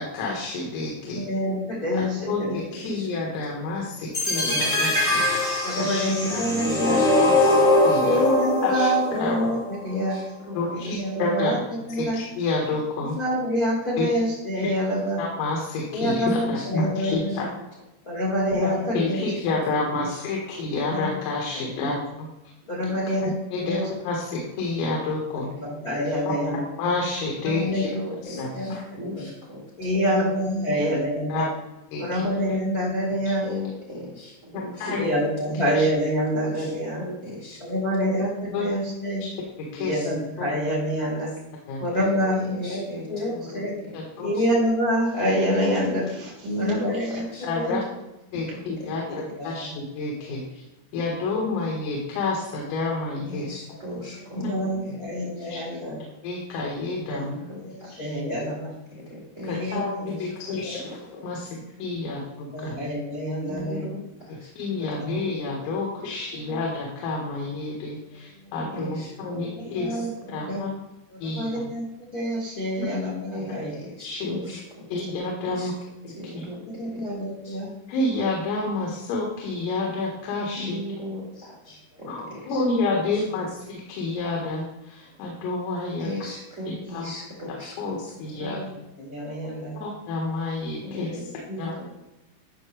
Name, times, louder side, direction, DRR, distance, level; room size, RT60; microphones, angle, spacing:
voice 1, 0.0-1.3 1.9-8.2 8.6-8.9 9.2-9.5 10.5-11.6 12.0-13.2 14.0-14.1 14.6-14.7 15.2-17.5 18.6-22.3 23.2-25.5 26.3-26.4 26.8-27.9 28.2-28.8 31.3-31.5 31.9-32.3 33.3-33.4 34.5-35.1 35.8-35.9 38.5-38.7 39.2-39.3 39.6-40.5 41.7-41.8 43.9-44.3 47.4-47.8 48.3-50.6 50.9-53.5 54.4-54.5 55.5-55.7 56.2-57.4 59.4-62.9 64.3-70.7 71.2-71.6 72.8-72.9 73.4-73.5 74.0-74.6 74.9-75.7 76.3-76.4 77.9-80.8 82.1-86.1 86.7-87.1 87.5-88.6 89.8-91.2 91.6-91.7, left 3 dB, 85° left, -2 dB, 4.1 m, -29 dB
voice 2, 1.1-2.6 4.3-4.9 5.6-7.1 8.0-10.2 10.7-11.6 11.9-12.2 13.1-15.2 15.9-17.3 18.0-19.2 20.9-21.1 21.5-22.0 22.7-23.3 23.6-23.9 25.3-26.6 27.4-28.0 28.5-29.3 29.8-31.5 32.0-33.5 34.9-37.0 37.6-39.2 39.8-41.3 41.8-43.7 44.2-47.8 49.1-49.7 54.3-56.0 57.1-57.2 57.6-58.7 59.5-60.1 60.6-60.8 62.5-63.9 64.8-64.9 66.5-66.6 69.7-70.6 71.2-71.8 72.1-73.7 76.2-77.7 88.4-88.7 89.0-89.8, equal, 70° left, -4 dB, 0.8 m, -27 dB
sound 1, 4.1-10.1, left 2 dB, 45° left, 0.9 m, -22 dB
voice 3, 6.4-7.1 7.4-7.5 9.9-10.6 16.0-17.1 18.7-18.9 19.1-19.3 19.6-20.1 23.5-23.8 25.4-25.6 26.0-26.1 27.6-28.7 29.0-29.6 29.9-30.8 33.4-35.6 36.5-36.7 37.0-37.6 38.0-38.7 41.9-44.0 44.3-44.5 46.4-47.4 48.5-48.9 49.4-49.5 53.3-55.5 57.2-58.1 58.9-60.1 61.4-61.5 63.4-64.5 66.0-66.1 68.7-69.9 73.3-74.6 75.4-75.7 76.1-76.6 76.9-77.1 77.4-77.6 80.6-82.1 82.5-82.6 86.0-87.7 90.8-91.8, left 1 dB, 75° right, -4 dB, 0.7 m, -37 dB
12.5 x 6.0 x 3.3 m, 0.91 s
omnidirectional pair, 5.8 m